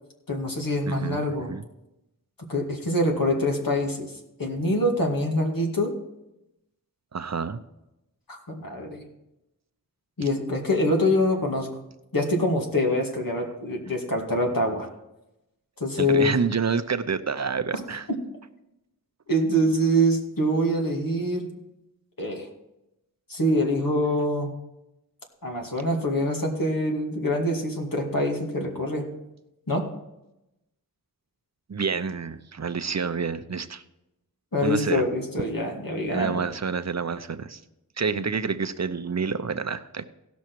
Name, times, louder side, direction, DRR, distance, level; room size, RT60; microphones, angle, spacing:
voice 1, 0.3-1.5 2.5-4.1 4.4-5.9 8.3-9.0 10.2-11.7 12.1-14.9 15.8-16.4 17.7-17.8 19.3-21.5 22.2-22.5 23.3-24.5 25.4-29.1 29.7-29.8 34.5-36.4, equal, 70° left, 1 dB, 2.3 m, -25 dB
voice 2, 0.9-1.2 1.5-1.6 7.1-7.6 16.0-18.1 31.7-33.8 34.6-35.0 36.1-37.6 38.0-40.0, right 5 dB, 50° right, 11 dB, 0.7 m, -28 dB
16.5 x 6.2 x 4.6 m, 0.91 s
wide cardioid pair, 65°, 35 cm